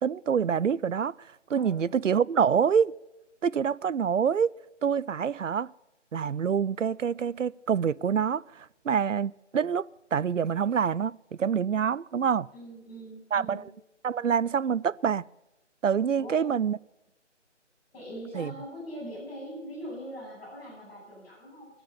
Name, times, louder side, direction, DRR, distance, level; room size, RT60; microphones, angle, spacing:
voice 1, 0.0-2.9 3.4-4.5 4.8-5.7 6.1-12.5 13.3-13.7 14.0-15.2 15.8-16.8 18.3-18.5, right 7 dB, 80° right, 0.5 m, -26 dB
voice 2, 1.5-1.9 12.5-13.7 16.1-16.4 17.9-21.7, equal, 10° left, 7.8 m, -42 dB
21.0 x 8.0 x 7.0 m
figure-of-eight pair, 160°, 37 cm